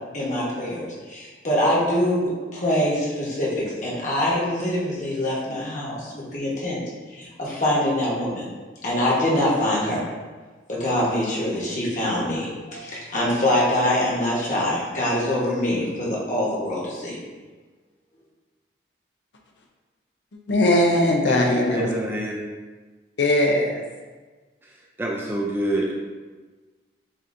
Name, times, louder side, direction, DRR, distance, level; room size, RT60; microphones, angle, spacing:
voice 1, 0.1-6.8 7.1-8.5 8.8-10.2 10.7-17.2, left 1 dB, 45° left, -5 dB, 1.1 m, -24 dB
voice 2, 20.5-21.9 23.2-23.8, left 1 dB, 75° left, 1 dB, 0.5 m, -19 dB
voice 3, 21.3-22.4 25.0-25.9, right 1 dB, 10° right, -2 dB, 0.4 m, -26 dB
7.5 x 2.8 x 2.5 m, 1.3 s
head